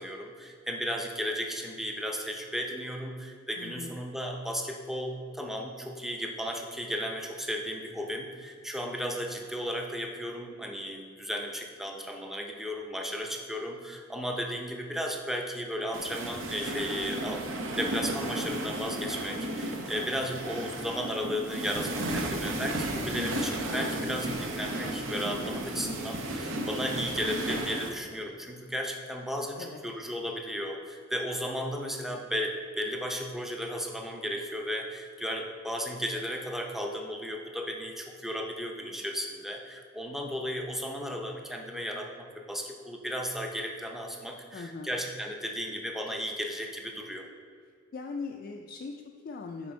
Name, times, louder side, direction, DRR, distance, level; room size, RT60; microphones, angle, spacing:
voice 1, 0.0-47.3, equal, ahead, 1 dB, 0.5 m, -35 dB
voice 2, 3.6-3.9 29.6-29.8 44.5-44.9 47.9-49.7, left 4 dB, 50° left, 2 dB, 0.3 m, -40 dB
sound 1, 15.9-27.9, right 1 dB, 70° right, 0.7 m, -34 dB
6.0 x 4.4 x 4.3 m, 2.2 s
head